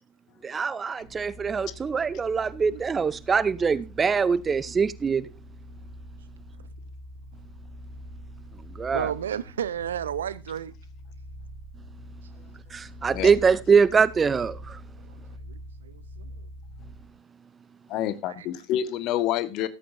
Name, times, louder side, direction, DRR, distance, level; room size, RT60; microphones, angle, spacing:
voice 1, 0.4-5.2 8.8-9.1 12.7-14.8, right 5 dB, 20° right, 0.5 m, -23 dB
sound 1, 1.0-17.1, equal, 75° left, 3.8 m, -44 dB
voice 2, 8.9-10.7 15.0-16.5 18.4-18.5 19.6-19.7, right 9 dB, 70° right, 0.8 m, -33 dB
voice 3, 17.9-19.7, left 11 dB, 45° left, 1.5 m, -27 dB
14.0 x 14.0 x 2.7 m
figure-of-eight pair, 80°, 0 cm